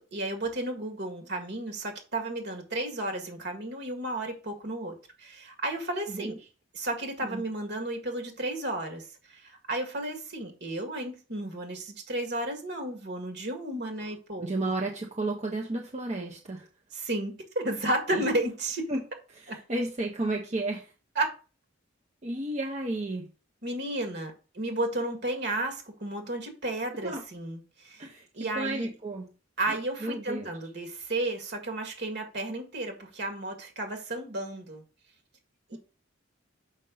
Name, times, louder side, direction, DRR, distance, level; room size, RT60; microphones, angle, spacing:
voice 1, 0.0-6.4 6.7-14.5 16.9-18.9 19.5-19.6 21.2-21.3 23.6-28.0 28.4-28.9 29.6-34.8 35.7-35.8, right 1 dB, 60° right, 4 dB, 1.9 m, -33 dB
voice 2, 14.4-16.7 18.1-18.2 18.9-19.0 19.3-20.9 22.2-23.3 27.0-27.2 28.0-29.3 29.7-30.5 35.7-35.8, right 2 dB, 35° right, 0 dB, 0.8 m, -33 dB
6.6 x 5.3 x 3.9 m, 0.34 s
head